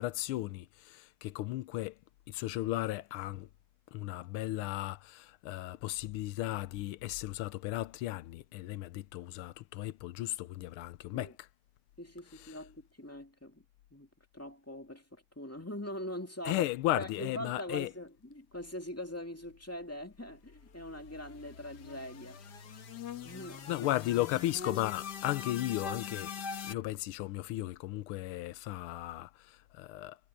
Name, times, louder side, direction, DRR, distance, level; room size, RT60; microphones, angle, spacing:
voice 1, 0.0-1.9 2.3-3.5 3.9-11.3 16.4-17.9 23.7-26.3 26.7-30.2, left 16 dB, 85° left, 1.5 m, -35 dB
voice 2, 12.0-13.6 13.9-14.1 14.3-16.7 17.0-22.4 23.2-23.9, left 1 dB, 5° left, 2.2 m, -42 dB
sound 1, 20.3-26.7, left 6 dB, 55° left, 1.8 m, -43 dB
omnidirectional pair, 2.3 m